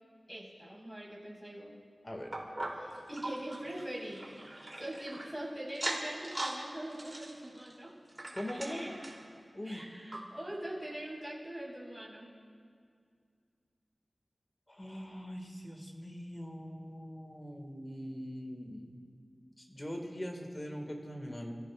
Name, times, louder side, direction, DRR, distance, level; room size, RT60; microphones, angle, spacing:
voice 1, 0.3-1.7 2.8-4.2 4.7-7.9 8.5-8.9 9.6-12.3, right 1 dB, 5° right, -5 dB, 4.8 m, -43 dB
sound 1, 2.3-5.3 5.7-6.6 6.9-9.3 9.7-9.8 10.1-10.2 10.8-10.9, right 1 dB, 30° right, 3.0 m, -40 dB
voice 2, 8.3-8.8 9.5-9.8 14.7-19.0 19.6-21.5, equal, 25° left, 1 dB, 2.0 m, -42 dB
30.0 x 15.0 x 2.5 m, 2.2 s
wide cardioid pair, 85°, 0 cm